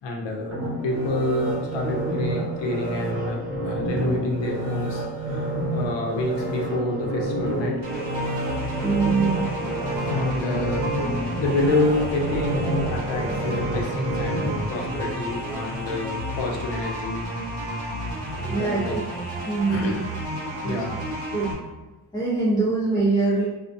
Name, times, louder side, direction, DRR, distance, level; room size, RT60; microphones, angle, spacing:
voice 1, 0.0-5.0 5.3-5.4 5.7-7.8 10.0-11.0 11.3-14.4 14.7-17.3 18.3-19.0 19.7-20.1 20.6-21.1, left 2 dB, 80° left, 0 dB, 0.7 m, -28 dB
sound 1, 0.5-15.6 16.0-16.1, right 1 dB, 35° right, 0.8 m, -29 dB
sound 2, 7.8-21.5, equal, 80° right, 0.9 m, -32 dB
voice 2, 8.8-9.4 18.5-19.1 19.4-20.0 20.6-20.8 21.3-21.5 22.1-23.5, right 3 dB, 10° left, -6 dB, 0.3 m, -23 dB
2.4 x 2.1 x 2.5 m, 1.1 s
cardioid pair, 105°, 43 cm